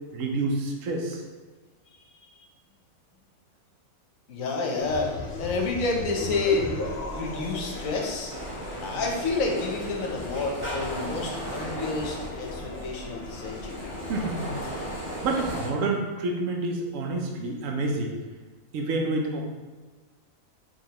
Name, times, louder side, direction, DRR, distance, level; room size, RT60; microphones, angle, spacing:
voice 1, 0.1-1.2 14.1-14.5 14.7-14.9 15.2-18.1 18.7-19.4, right 2 dB, 70° right, 1 dB, 1.0 m, -28 dB
voice 2, 4.3-5.1 5.4-6.7 7.1-8.3 8.8-13.9, left 3 dB, 70° left, 0 dB, 1.1 m, -29 dB
sound 1, 4.8-15.6, left 2 dB, 55° left, 0.9 m, -37 dB
sound 2, 8.3-15.7, right 1 dB, 10° right, 1.4 m, -37 dB
4.9 x 2.9 x 2.9 m, 1.3 s
omnidirectional pair, 1.5 m